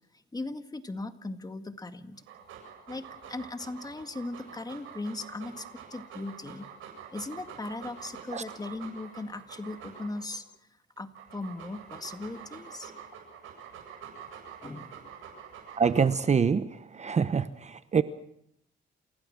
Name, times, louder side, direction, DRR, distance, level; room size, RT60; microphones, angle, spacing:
voice 1, 0.3-2.2 2.9-6.7 7.1-10.4 11.0-12.9 14.6-15.0, left 2 dB, 20° left, 9 dB, 2.0 m, -38 dB
Dog, 2.2-10.4 11.0-16.4, right 7 dB, 85° right, 7.7 m, -46 dB
voice 2, 15.8-18.0, right 6 dB, 35° right, 14 dB, 1.0 m, -25 dB
28.5 x 16.5 x 7.6 m, 0.74 s
cardioid pair, 90°, 20 cm